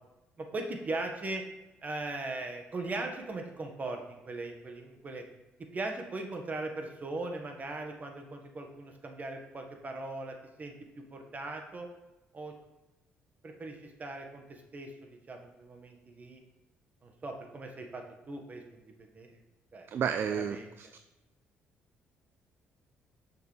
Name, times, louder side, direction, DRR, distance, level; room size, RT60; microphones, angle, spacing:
voice 1, 0.4-1.4 1.8-5.2 5.7-11.9 12.3-12.5 13.4-16.4 17.0-19.4 19.7-19.9 20.4-20.7, right 2 dB, 35° right, 4 dB, 1.5 m, -39 dB
voice 2, 19.9-20.9, right 7 dB, 55° right, 10 dB, 0.4 m, -31 dB
6.6 x 6.6 x 3.3 m, 1.0 s
cardioid pair, 80°, 5 cm